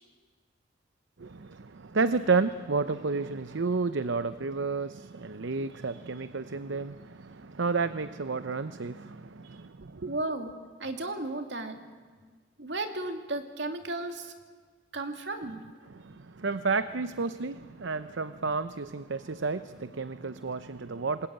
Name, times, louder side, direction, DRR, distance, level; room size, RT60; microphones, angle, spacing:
voice 1, 1.2-10.1 15.9-21.3, right 4 dB, 85° right, 12 dB, 0.7 m, -31 dB
voice 2, 10.1-10.5 10.8-11.8 12.6-14.3 14.9-15.6, right 2 dB, 70° right, 5 dB, 2.5 m, -34 dB
27.5 x 21.0 x 8.9 m, 1.5 s
head